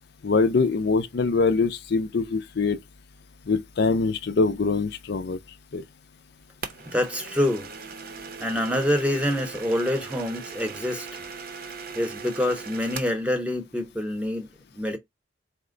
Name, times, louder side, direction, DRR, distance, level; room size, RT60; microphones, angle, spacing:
voice 1, 0.2-2.8 3.5-5.4 5.7-5.8, left 4 dB, 60° left, 0.5 m, -23 dB
sound 1, 6.6-13.2, right 5 dB, 55° right, 0.7 m, -39 dB
voice 2, 6.9-7.7 8.4-11.1 11.9-14.5 14.7-15.0, left 1 dB, 5° right, 0.8 m, -26 dB
4.2 x 2.1 x 3.7 m
head